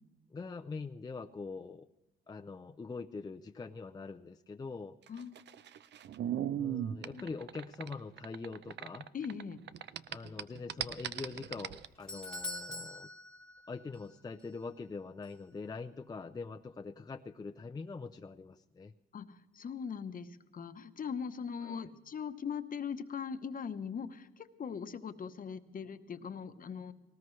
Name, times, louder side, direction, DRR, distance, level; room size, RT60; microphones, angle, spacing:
voice 1, 0.3-1.9 2.3-5.0 6.6-9.1 10.1-13.1 13.7-18.9 21.6-21.9, left 4 dB, 20° left, 6 dB, 0.5 m, -43 dB
sound 1, 5.1-9.4 9.7-11.9, right 10 dB, 60° right, 0.6 m, -38 dB
voice 2, 9.1-9.6 19.1-26.9, left 6 dB, 45° left, 11 dB, 1.0 m, -40 dB
Doorbell, 11.6-14.1 14.4-14.5 15.2-15.3, left 2 dB, 5° left, 1.3 m, -44 dB
19.0 x 18.5 x 3.2 m, 1.0 s
cardioid pair, 90°, 20 cm